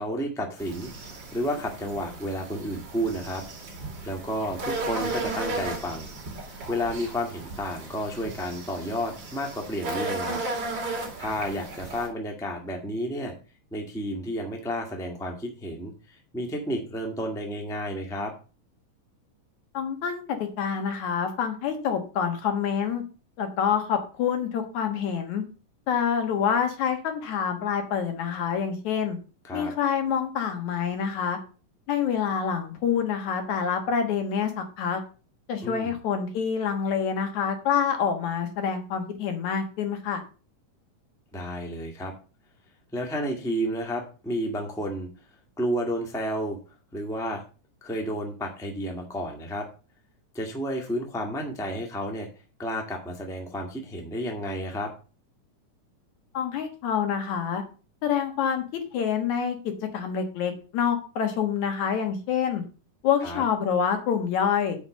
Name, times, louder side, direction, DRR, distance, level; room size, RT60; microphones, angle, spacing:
voice 1, 0.0-3.4 4.0-6.1 6.7-10.4 10.8-13.3 13.7-18.3 29.4-29.7 35.6-35.9 41.3-42.1 42.9-45.1 45.6-46.6 46.9-47.4 47.8-49.7 50.3-52.3 52.6-54.9 63.2-63.4, equal, ahead, 2 dB, 1.0 m, -31 dB
sound 1, 0.6-12.1, right 2 dB, 50° right, 3.1 m, -35 dB
voice 2, 19.7-23.0 23.4-25.4 25.9-29.2 29.5-31.4 31.9-35.0 35.5-40.2 56.3-57.6 58.0-58.6 58.9-62.6 63.0-64.8, left 7 dB, 65° left, 6 dB, 2.7 m, -27 dB
8.4 x 5.1 x 6.8 m, 0.35 s
omnidirectional pair, 3.7 m